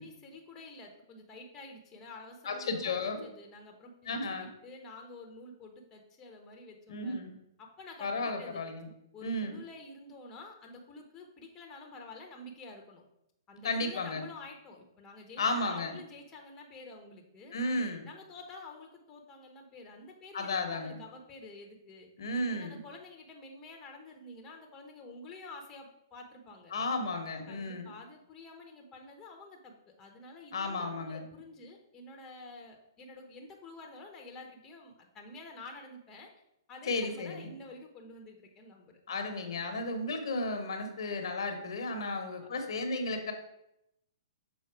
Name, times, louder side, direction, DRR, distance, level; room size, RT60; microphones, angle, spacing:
voice 1, 0.0-3.0 3.2-7.2 7.6-8.6 9.1-13.0 13.5-17.6 18.0-22.1 22.5-26.7 27.5-36.3 36.7-39.3 42.0-42.5, left 2 dB, 20° left, 2 dB, 1.0 m, -49 dB
voice 2, 2.4-3.2 4.1-4.5 6.9-7.3 8.0-8.8 9.2-9.6 13.6-14.2 15.4-15.9 17.5-18.1 20.3-21.0 22.2-22.8 26.7-27.9 30.5-31.2 36.9-37.5 39.1-43.3, left 2 dB, 70° left, 5 dB, 1.2 m, -33 dB
6.4 x 4.0 x 4.7 m, 0.82 s
hypercardioid pair, 130°, 3 cm